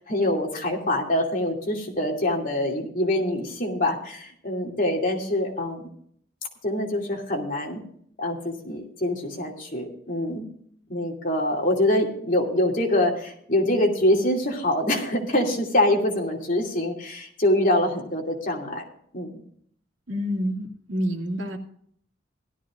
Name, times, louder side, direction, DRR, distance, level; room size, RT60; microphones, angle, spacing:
voice 1, 0.0-5.8 6.6-7.8 8.2-10.5 10.9-18.8 19.1-19.4, left 1 dB, 45° left, 0 dB, 2.7 m, -25 dB
voice 2, 20.1-21.6, equal, 75° right, 2 dB, 2.2 m, -28 dB
17.0 x 13.0 x 2.5 m, 0.63 s
head